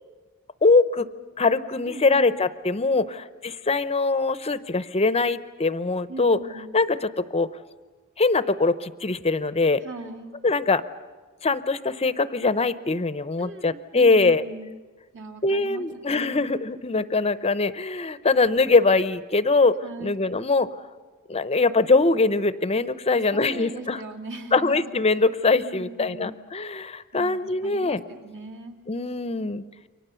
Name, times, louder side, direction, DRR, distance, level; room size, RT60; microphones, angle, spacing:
voice 1, 0.6-1.1 1.4-6.4 6.7-7.5 8.2-9.8 10.4-10.8 11.4-14.4 15.4-20.7 21.3-24.0 24.5-28.0 28.9-29.6, left 3 dB, 30° left, 14 dB, 0.7 m, -22 dB
voice 2, 1.8-2.3 6.1-6.7 9.8-10.3 13.4-14.7 15.1-16.5 19.8-20.2 23.1-24.9 25.6-26.4 27.1-28.8, right 2 dB, 55° right, 3 dB, 2.5 m, -39 dB
29.0 x 24.5 x 7.0 m, 1.3 s
head